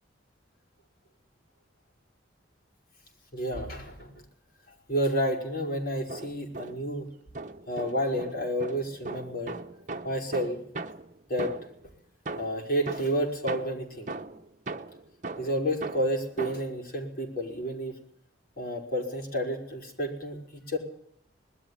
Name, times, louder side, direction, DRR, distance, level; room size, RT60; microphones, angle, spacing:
voice 1, 3.3-4.2 4.9-7.1 7.7-9.6 10.0-10.6 11.3-11.6 12.4-14.1 15.4-18.0 18.6-20.8, equal, 50° left, 1 dB, 5.4 m, -30 dB
sound 1, 5.9-7.0 7.3-11.9 12.3-16.8, right 3 dB, 40° right, 1.1 m, -39 dB
21.0 x 13.0 x 9.8 m, 0.73 s
head